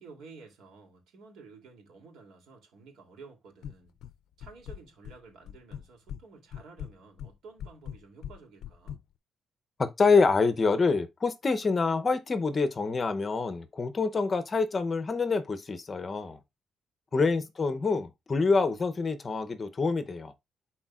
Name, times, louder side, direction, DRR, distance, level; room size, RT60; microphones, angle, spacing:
voice 1, 0.0-4.0 4.4-9.0 17.1-17.5, right 4 dB, 85° right, 2.8 m, -52 dB
sound 1, 3.6-4.1 4.4-5.2 5.5-6.2 6.5-9.0, left 9 dB, 85° left, 0.4 m, -41 dB
voice 2, 9.8-16.4 17.1-20.3, left 4 dB, 25° left, 0.6 m, -26 dB
11.5 x 4.3 x 2.4 m
cardioid pair, 165°, 0 cm